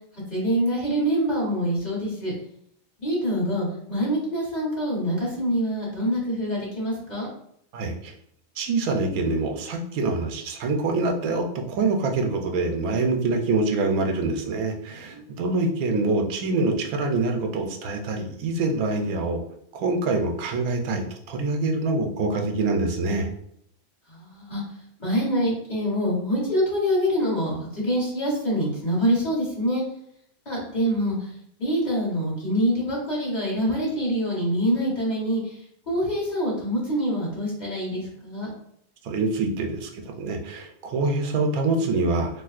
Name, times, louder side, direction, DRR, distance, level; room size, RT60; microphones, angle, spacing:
voice 1, 0.3-2.3 3.0-7.3 14.9-15.4 24.1-24.6 25.0-29.8 30.4-31.3 31.6-35.6 35.9-38.5, equal, 35° left, -5 dB, 1.1 m, -25 dB
voice 2, 7.7-8.1 8.6-19.4 19.7-23.3 39.0-42.3, right 3 dB, 90° right, 3 dB, 1.1 m, -25 dB
3.4 x 2.7 x 2.4 m, 0.70 s
omnidirectional pair, 1.5 m